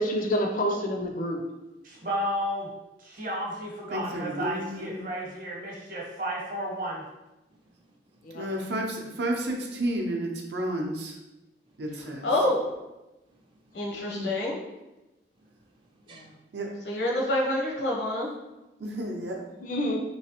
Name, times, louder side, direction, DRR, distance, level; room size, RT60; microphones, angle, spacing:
voice 1, 0.0-1.4 8.2-8.4 13.9-14.3 19.5-20.0, equal, 50° left, 2 dB, 0.5 m, -28 dB
voice 2, 1.8-2.7 3.0-7.0, equal, 50° right, -2 dB, 0.9 m, -32 dB
voice 3, 3.9-5.1 8.3-11.1 11.8-12.3 16.5-16.7 18.8-19.4, right 1 dB, 75° right, 1 dB, 0.6 m, -31 dB
voice 4, 7.5-8.4 11.7-12.1 13.3-14.0 15.3-16.4 16.7-16.8 19.0-19.1, right 2 dB, 30° right, 2 dB, 0.4 m, -60 dB
voice 5, 11.9-12.7 13.7-14.6 16.8-18.3, left 1 dB, 75° left, -2 dB, 0.9 m, -27 dB
3.2 x 3.0 x 2.9 m, 0.99 s
head